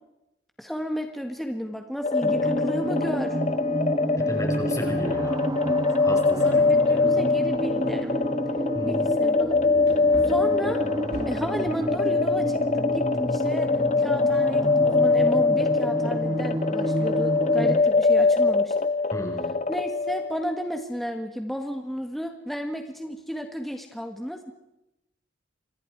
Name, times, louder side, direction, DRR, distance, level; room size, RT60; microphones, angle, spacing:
voice 1, 0.6-3.4 4.8-5.2 6.4-8.1 8.8-9.6 10.2-10.8 11.3-13.7 14.0-18.9 19.7-24.5, equal, ahead, 4 dB, 1.8 m, -33 dB
sound 1, 2.0-20.5, left 3 dB, 40° left, 0.9 m, -23 dB
sound 2, 2.2-17.8, right 1 dB, 20° right, 1.2 m, -30 dB
voice 2, 4.2-7.2 8.7-9.1 19.1-19.6, equal, 20° left, 2 dB, 5.5 m, -34 dB
Wood, 7.8-7.9 8.5-8.6 9.8-11.6 14.3-15.1 15.4-15.5, equal, 60° left, 3.9 m, -42 dB
28.5 x 24.0 x 4.8 m, 0.90 s
head